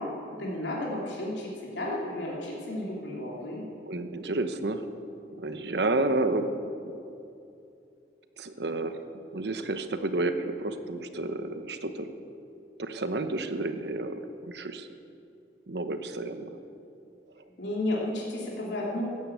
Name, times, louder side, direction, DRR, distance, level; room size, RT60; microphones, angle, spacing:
voice 1, 0.0-3.7 17.6-19.0, left 1 dB, 90° left, -4 dB, 2.9 m, -33 dB
voice 2, 3.9-4.9 5.4-6.9 8.4-8.9 9.3-12.1 12.8-14.9 15.7-16.5, right 2 dB, 75° right, 9 dB, 1.0 m, -30 dB
15.0 x 9.7 x 8.5 m, 2.7 s
head